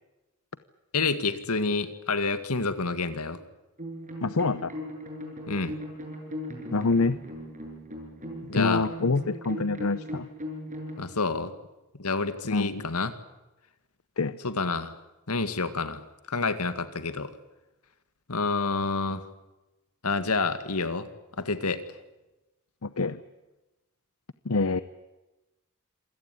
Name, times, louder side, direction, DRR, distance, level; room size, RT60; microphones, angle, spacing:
voice 1, 0.9-3.4 5.5-5.7 8.4-8.9 11.0-11.5 11.9-13.1 14.4-14.9 15.3-16.0 16.3-17.3 18.3-19.2 20.0-21.1 21.4-21.8, left 3 dB, 85° left, 11 dB, 2.1 m, -28 dB
sound 1, 3.8-10.9, equal, 35° right, 7.0 m, -38 dB
voice 2, 4.2-4.7 6.7-7.2 8.5-10.3 12.4-12.8 14.2-14.4 22.8-23.2 24.4-24.8, left 3 dB, 70° left, 14 dB, 0.8 m, -26 dB
27.0 x 17.0 x 9.9 m, 1.0 s
head